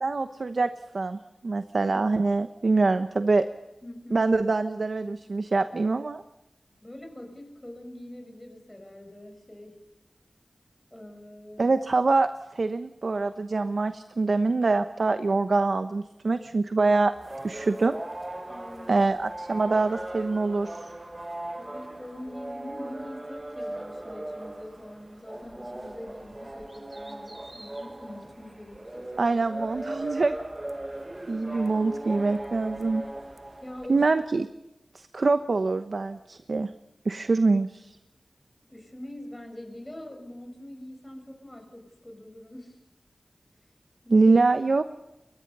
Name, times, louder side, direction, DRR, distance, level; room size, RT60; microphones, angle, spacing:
voice 1, 0.0-3.4 4.1-6.2 11.6-17.1 17.4-18.0 18.9-20.9 29.2-30.4 31.3-33.0 33.9-34.5 34.9-36.7 37.0-38.0 44.1-44.8, right 3 dB, 60° right, 9 dB, 1.0 m, -24 dB
voice 2, 3.8-4.2 6.8-9.8 10.9-11.7 18.5-19.1 19.6-19.8 21.6-29.4 33.6-34.0 38.7-42.8 44.0-44.3, left 1 dB, 20° left, 4 dB, 6.5 m, -43 dB
sound 1, 17.1-34.2, right 1 dB, 20° right, 1.1 m, -39 dB
29.0 x 22.5 x 5.5 m, 0.96 s
wide cardioid pair, 95°, 0 cm